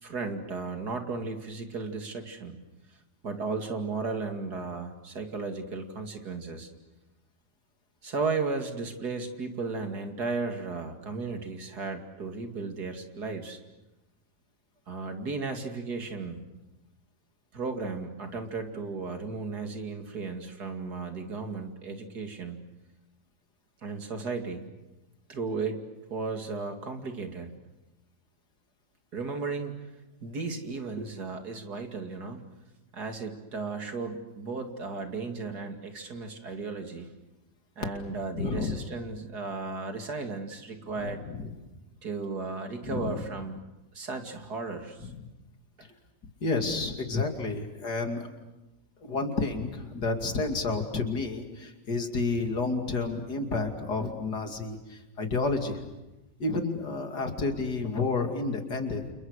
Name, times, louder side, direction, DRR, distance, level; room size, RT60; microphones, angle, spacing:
voice 1, 0.0-2.6 3.2-6.7 8.0-13.6 14.9-16.4 17.5-22.6 23.8-24.7 25.3-25.8 26.1-27.5 29.1-29.7 30.2-32.4 32.9-37.1 37.8-41.2 42.0-43.6 43.9-45.1, right 4 dB, 75° right, 5 dB, 3.0 m, -35 dB
voice 2, 38.3-38.8 41.0-41.5 42.8-43.3 45.0-45.3 46.4-48.3 49.0-55.9 56.4-59.1, left 3 dB, 80° left, 4 dB, 3.2 m, -30 dB
29.5 x 28.5 x 6.6 m, 1.0 s
omnidirectional pair, 1.7 m